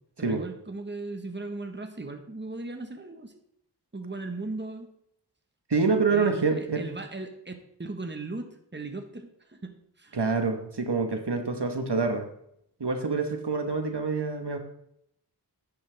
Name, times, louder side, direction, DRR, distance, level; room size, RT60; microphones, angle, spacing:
voice 1, 0.2-3.3 3.9-4.9 6.1-7.5 7.8-10.2, right 2 dB, 25° right, 6 dB, 1.3 m, -37 dB
voice 2, 5.7-6.8 10.1-12.3 12.8-14.6, right 4 dB, 70° right, 5 dB, 1.4 m, -26 dB
10.5 x 9.9 x 3.4 m, 0.73 s
wide cardioid pair, 45°, 42 cm